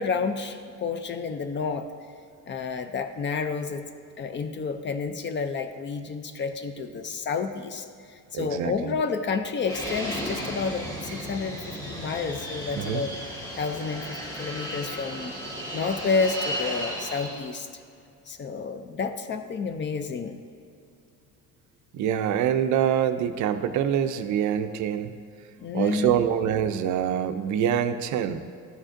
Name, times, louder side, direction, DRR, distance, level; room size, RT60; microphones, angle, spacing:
voice 1, 0.0-1.9 2.5-3.9 4.2-13.1 13.6-15.3 15.7-17.7 18.3-20.4 25.6-26.2, left 5 dB, 35° left, 8 dB, 0.4 m, -30 dB
voice 2, 8.3-8.9 12.8-13.0 21.9-25.1 25.7-28.4, right 9 dB, 60° right, 9 dB, 0.4 m, -25 dB
Fixed-wing aircraft airplane, 9.6-17.5, equal, 10° left, 1.5 m, -34 dB
12.0 x 5.0 x 2.5 m, 2.4 s
cardioid pair, 125°, 34 cm